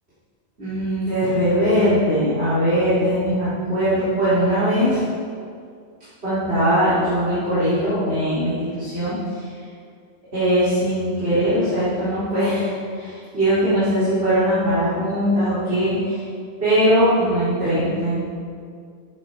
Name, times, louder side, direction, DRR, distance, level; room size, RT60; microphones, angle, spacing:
voice 1, 0.6-5.0 6.2-9.5 10.3-16.2 16.6-18.2, equal, 60° right, -14 dB, 4.1 m, -20 dB
14.0 x 10.5 x 3.9 m, 2.3 s
omnidirectional pair, 1.2 m